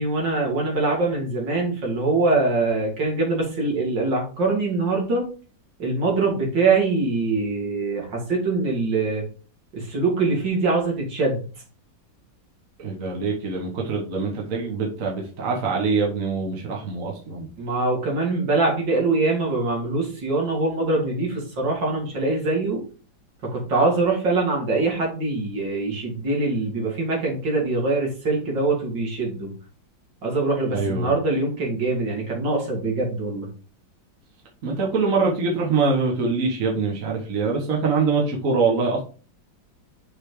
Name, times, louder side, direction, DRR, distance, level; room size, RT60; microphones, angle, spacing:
voice 1, 0.0-5.3 5.8-9.2 9.7-11.4 17.6-22.8 23.4-29.5 30.2-33.5, right 3 dB, 70° right, -2 dB, 2.9 m, -23 dB
voice 2, 12.8-17.5 30.7-31.1 34.6-39.0, right 4 dB, 45° right, -1 dB, 1.7 m, -24 dB
6.1 x 4.2 x 4.8 m, 0.38 s
omnidirectional pair, 2.1 m